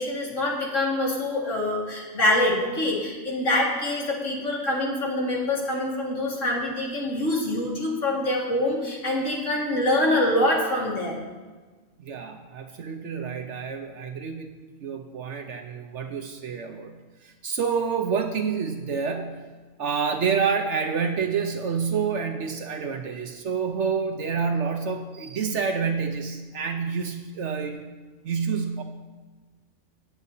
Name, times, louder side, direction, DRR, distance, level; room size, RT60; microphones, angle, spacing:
voice 1, 0.0-11.2, left 1 dB, 75° left, -3 dB, 2.4 m, -25 dB
voice 2, 12.0-19.4 19.8-27.9 28.2-28.8, right 6 dB, 70° right, 5 dB, 1.0 m, -28 dB
19.0 x 8.2 x 2.8 m, 1.3 s
omnidirectional pair, 1.3 m